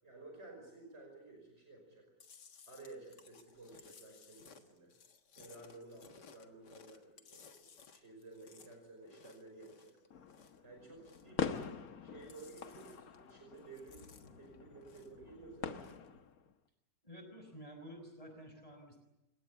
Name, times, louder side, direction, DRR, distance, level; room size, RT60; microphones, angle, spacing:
voice 1, 0.0-2.1 2.7-4.9 5.4-9.9 10.6-11.7 12.0-16.0, right 3 dB, 40° right, 1 dB, 5.7 m, -54 dB
Chewing mastication, 2.2-10.7 10.9-11.9 12.1-13.3 13.6-15.3 15.6-16.1, left 6 dB, 75° left, 2.2 m, -60 dB
sound 1, 10.1-16.5, left 6 dB, 60° left, 1.6 m, -44 dB
voice 2, 17.0-19.0, equal, 20° left, 3 dB, 5.6 m, -51 dB
29.5 x 18.0 x 8.5 m, 0.94 s
omnidirectional pair, 1.8 m